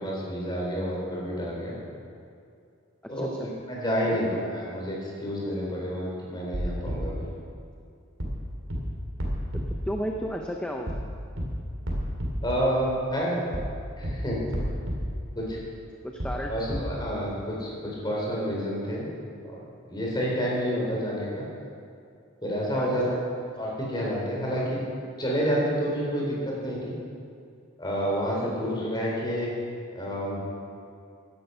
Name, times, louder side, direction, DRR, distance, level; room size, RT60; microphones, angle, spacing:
voice 1, 0.0-1.8 3.1-7.3 12.4-13.5 14.0-14.4 15.4-15.6 16.5-19.1 19.4-19.6 19.9-21.4 22.4-23.1 23.6-24.8 25.2-26.9 27.8-29.5 29.9-30.4, equal, 20° left, -4 dB, 4.0 m, -29 dB
voice 2, 3.0-3.5 4.1-4.2 9.5-11.0 16.0-16.5 17.1-17.2 22.7-23.2 28.4-28.6, equal, 5° left, 1 dB, 0.7 m, -34 dB
sound 1, 6.5-7.0 8.2-8.4 8.7-8.8 9.2-9.6 10.9-11.1 11.4-11.5 11.9-12.3 13.5-13.7 14.0-14.1 14.5-15.0 16.2-16.4 16.7-16.8, equal, 65° right, 3.3 m, -30 dB
16.0 x 11.0 x 5.7 m, 2.4 s
head